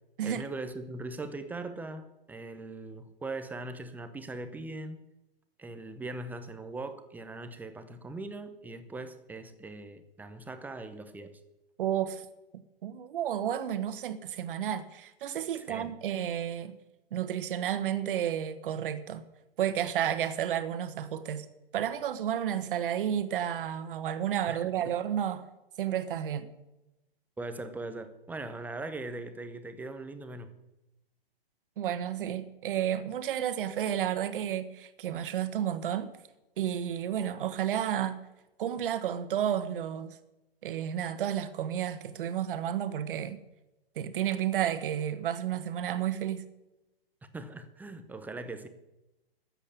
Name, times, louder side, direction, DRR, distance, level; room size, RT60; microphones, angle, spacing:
voice 1, 0.2-5.0 5.6-11.3 15.5-15.9 24.5-24.7 27.4-30.5 47.3-48.7, right 2 dB, 5° right, 0.8 m, -40 dB
voice 2, 11.8-12.2 12.8-16.8 17.1-19.2 19.6-21.5 21.7-25.5 25.8-26.5 31.8-36.1 36.6-38.2 38.6-40.2 40.6-43.4 43.9-46.5, right 10 dB, 60° right, 1.5 m, -31 dB
13.0 x 7.9 x 8.8 m
hypercardioid pair, 140°, 30 cm